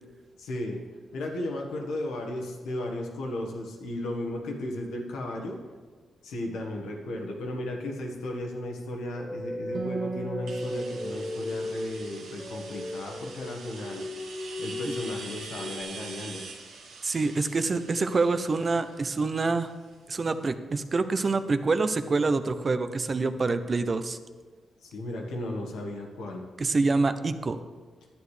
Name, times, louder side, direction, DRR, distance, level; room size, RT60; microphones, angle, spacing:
voice 1, 0.4-0.8 1.1-5.6 6.2-14.1 14.6-16.4 24.8-26.4, left 1 dB, 90° left, 1 dB, 1.3 m, -35 dB
sound 1, 9.1-15.8, left 2 dB, 15° left, 0.5 m, -37 dB
Acoustic guitar, 9.7-13.5, right 5 dB, 60° right, 0.9 m, -39 dB
sound 2, 10.5-20.1, right 4 dB, 90° right, 1.3 m, -45 dB
voice 2, 17.0-19.7 20.1-24.2 26.6-27.6, right 3 dB, 40° right, 11 dB, 0.5 m, -26 dB
10.5 x 9.2 x 3.2 m, 1.4 s
cardioid pair, 80°, 0 cm